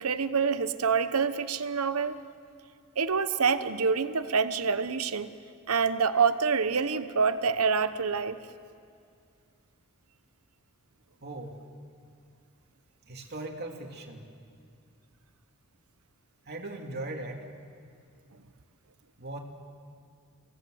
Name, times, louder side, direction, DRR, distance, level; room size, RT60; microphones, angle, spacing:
voice 1, 0.0-2.2 3.0-5.3 5.7-8.4, right 5 dB, 90° right, 12 dB, 1.0 m, -26 dB
voice 2, 11.2-11.6 13.1-14.2 16.5-17.4 19.2-19.4, right 2 dB, 50° right, 1 dB, 2.8 m, -38 dB
28.5 x 18.0 x 7.9 m, 2.3 s
head